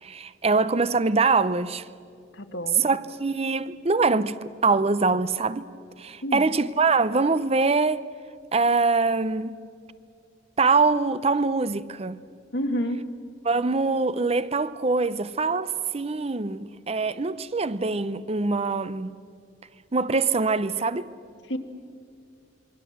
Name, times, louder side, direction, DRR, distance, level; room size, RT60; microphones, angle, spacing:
voice 1, 0.0-1.9 2.8-5.7 6.0-8.0 8.5-9.5 10.6-12.2 13.4-19.1 19.9-21.1, right 4 dB, 35° right, 0.6 m, -24 dB
voice 2, 2.3-2.8 6.2-6.5 12.5-13.0 21.5-21.6, equal, 70° left, 1.7 m, -28 dB
27.0 x 22.5 x 7.9 m
head